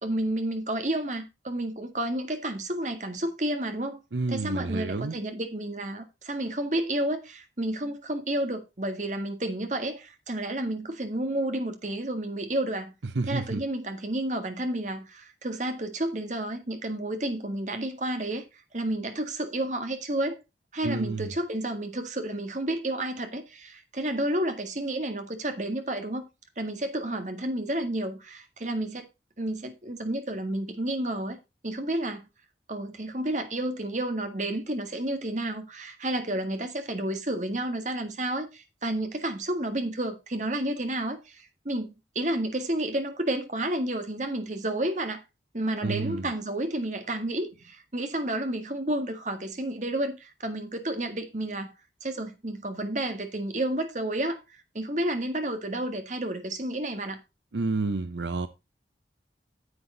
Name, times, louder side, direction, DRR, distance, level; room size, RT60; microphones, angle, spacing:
voice 1, 0.0-4.0 4.3-12.9 13.3-18.4 18.7-20.4 20.7-26.3 26.6-29.1 29.4-31.4 31.6-32.2 32.7-45.2 45.5-51.7 52.0-57.2, right 1 dB, 45° right, 1.8 m, -31 dB
voice 2, 4.1-5.2 13.1-13.6 20.8-21.3 45.8-46.3 57.5-58.5, right 3 dB, 85° right, 0.7 m, -29 dB
9.7 x 7.9 x 3.9 m
head